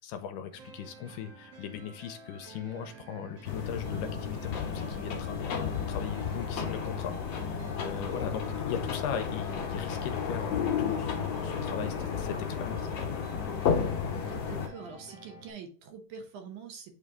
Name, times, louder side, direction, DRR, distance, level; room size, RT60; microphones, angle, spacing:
voice 1, 0.0-12.9, left 8 dB, 80° left, 2.2 m, -39 dB
sound 1, 0.5-15.5, right 3 dB, 55° right, 1.3 m, -50 dB
sound 2, 3.4-14.7, left 7 dB, 60° left, 1.8 m, -32 dB
voice 2, 14.3-17.0, right 6 dB, 70° right, 2.2 m, -45 dB
8.5 x 3.2 x 3.6 m
omnidirectional pair, 3.9 m